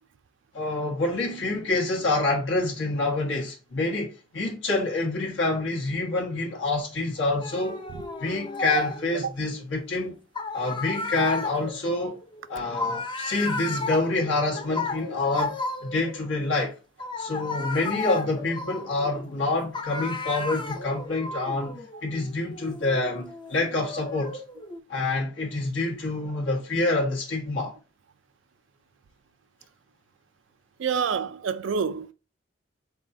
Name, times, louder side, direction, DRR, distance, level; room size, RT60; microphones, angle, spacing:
voice 1, 0.5-7.8 8.2-10.2 10.5-12.2 12.5-16.7 17.2-24.4 24.9-27.7, left 2 dB, 80° left, 1.5 m, -27 dB
sound 1, 7.4-9.2 10.4-16.3 17.0-19.4 19.7-24.8, left 2 dB, 25° left, 0.5 m, -34 dB
voice 2, 30.8-32.1, right 6 dB, 80° right, 0.4 m, -27 dB
4.0 x 3.6 x 2.6 m
head